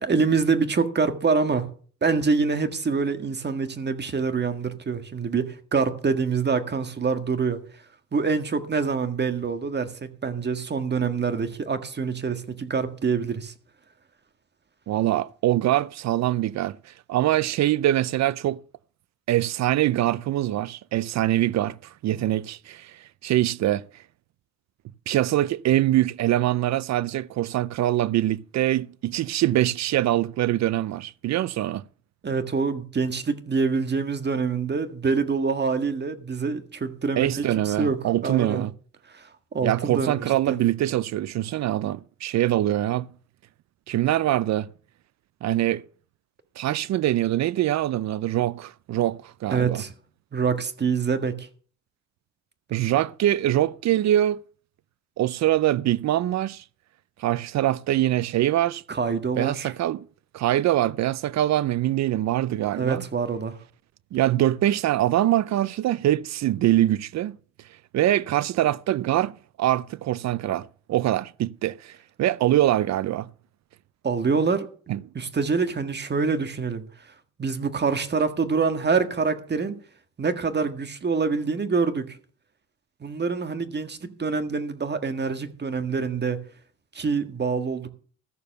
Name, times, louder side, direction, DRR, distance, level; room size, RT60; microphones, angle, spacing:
voice 1, 0.0-1.7 2.0-7.8 8.1-13.5 32.2-38.6 39.1-40.6 49.5-49.9 50.3-51.5 58.9-59.7 62.7-63.6 74.0-74.7 75.1-79.7 80.2-82.2 83.0-86.4 86.9-87.9, right 5 dB, 35° right, 1.6 m, -26 dB
voice 2, 14.9-18.6 19.3-21.8 22.0-22.9 23.2-23.8 25.1-31.8 37.2-38.7 39.6-43.1 43.9-44.7 45.4-45.8 46.6-49.8 52.7-54.4 55.2-56.6 57.2-58.8 59.4-60.0 60.3-63.0 64.1-67.3 67.9-69.3 69.6-73.3 74.9-75.0, right 13 dB, 65° right, 0.5 m, -23 dB
14.0 x 6.8 x 6.6 m
cardioid pair, 90°, 30 cm